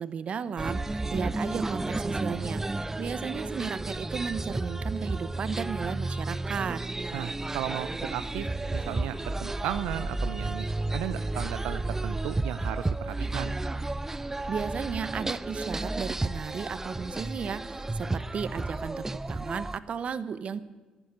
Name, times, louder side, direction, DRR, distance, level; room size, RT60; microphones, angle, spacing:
voice 1, 0.0-6.8 14.5-20.6, right 6 dB, 55° right, 15 dB, 0.8 m, -34 dB
sound 1, 0.6-19.8, right 2 dB, 15° right, 0.5 m, -32 dB
voice 2, 7.1-10.7 10.9-13.6, right 12 dB, 90° right, 13 dB, 0.4 m, -35 dB
11.5 x 10.0 x 9.6 m, 1.3 s
supercardioid pair, 70°, 2 cm